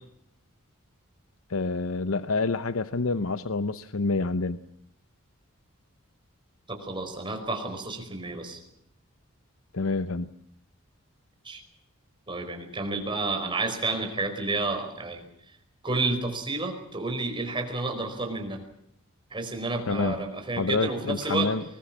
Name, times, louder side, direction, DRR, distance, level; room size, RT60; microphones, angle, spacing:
voice 1, 1.5-4.6 9.7-10.3 19.9-20.3 20.6-21.6, left 3 dB, 75° left, 13 dB, 0.8 m, -27 dB
voice 2, 6.7-8.6 11.4-11.6 12.3-15.2 15.8-18.7 19.3-21.5, right 3 dB, 25° right, 5 dB, 4.9 m, -30 dB
22.5 x 20.5 x 7.4 m, 0.74 s
head